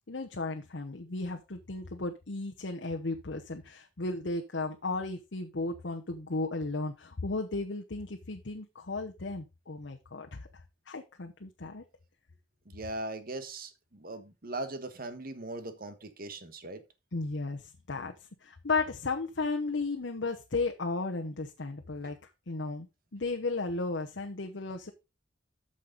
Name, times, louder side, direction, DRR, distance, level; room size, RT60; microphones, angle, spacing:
voice 1, 0.1-11.8 17.1-18.1 18.4-24.9, left 3 dB, 70° left, 0.9 m, -35 dB
voice 2, 12.6-16.8 22.0-22.1, right 2 dB, 50° right, 1.4 m, -40 dB
8.8 x 6.6 x 4.0 m
head